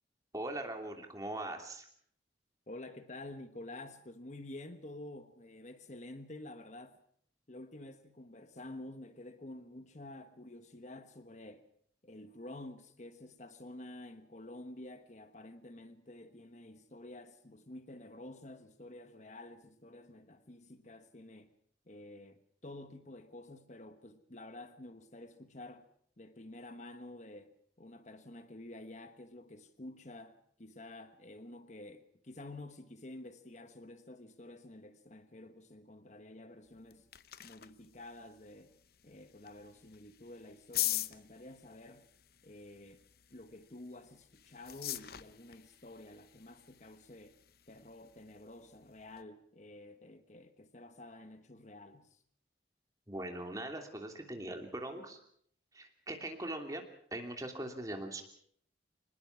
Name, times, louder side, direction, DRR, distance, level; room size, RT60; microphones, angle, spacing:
voice 1, 0.3-1.9 53.1-55.2 55.7-56.8 57.1-58.2, right 1 dB, 20° right, 3.0 m, -41 dB
voice 2, 2.7-7.0 7.5-11.6 12.0-21.5 21.9-25.9 26.2-37.1 37.4-38.7 39.0-42.1 42.4-43.0 43.3-47.4 47.7-52.2, left 1 dB, 40° left, 1.2 m, -50 dB
sound 1, 36.7-49.2, left 14 dB, 55° left, 0.8 m, -44 dB
24.5 x 20.0 x 6.0 m
head